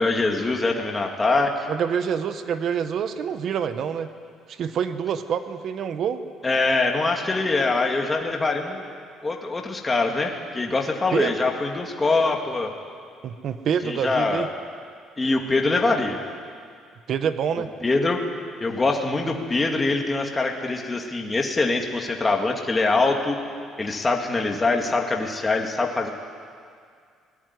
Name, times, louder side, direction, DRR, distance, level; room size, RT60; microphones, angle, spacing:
voice 1, 0.0-1.7 6.4-9.0 9.2-12.7 13.8-14.5 15.2-16.2 17.8-18.2 18.6-23.4 23.8-26.1, left 3 dB, 15° left, 2 dB, 2.0 m, -23 dB
voice 2, 1.7-4.1 4.5-6.2 11.1-11.3 13.2-14.5 17.1-17.7, right 7 dB, 45° right, 10 dB, 1.2 m, -26 dB
26.5 x 19.0 x 9.6 m, 2.2 s
cardioid pair, 155°, 0 cm